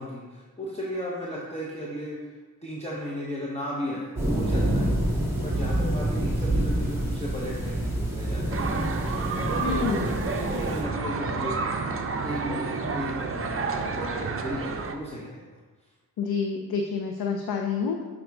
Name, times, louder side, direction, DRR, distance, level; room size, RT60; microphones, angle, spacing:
voice 1, 0.0-2.2 2.6-4.9 5.4-10.0 10.2-15.5, equal, 15° left, -5 dB, 0.7 m, -35 dB
sound 1, 4.2-10.8, right 1 dB, 5° right, 1.3 m, -27 dB
sound 2, 8.5-14.9, right 4 dB, 40° right, 0.5 m, -30 dB
voice 2, 9.6-10.1 16.2-18.0, left 5 dB, 80° left, 3 dB, 0.5 m, -28 dB
6.2 x 5.0 x 3.5 m, 1.4 s
wide cardioid pair, 140°, 37 cm